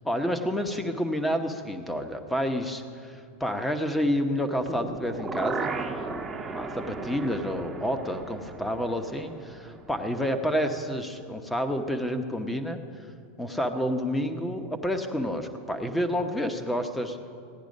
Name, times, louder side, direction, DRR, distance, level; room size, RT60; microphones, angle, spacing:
voice 1, 0.0-5.7 6.5-12.8 13.4-17.2, equal, 5° left, 7 dB, 1.1 m, -29 dB
sound 1, 4.6-10.6 11.0-11.1, right 3 dB, 20° right, 1.1 m, -36 dB
16.0 x 10.0 x 5.3 m, 2.4 s
hypercardioid pair, 100°, 0 cm